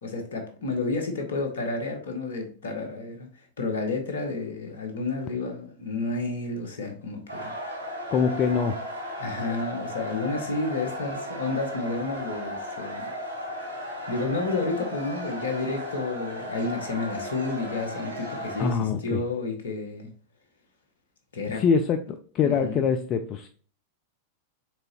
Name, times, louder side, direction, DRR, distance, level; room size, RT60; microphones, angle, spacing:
voice 1, 0.0-7.5 9.2-13.1 14.1-20.1 21.3-21.6 22.4-22.8, left 3 dB, 65° left, 4 dB, 1.0 m, -31 dB
sound 1, 7.3-18.7, equal, 85° left, 1.5 m, -35 dB
voice 2, 8.1-8.8 18.6-19.2 21.5-23.5, left 6 dB, 35° left, 7 dB, 0.3 m, -24 dB
4.5 x 3.8 x 2.8 m, 0.42 s
figure-of-eight pair, 90°, 0 cm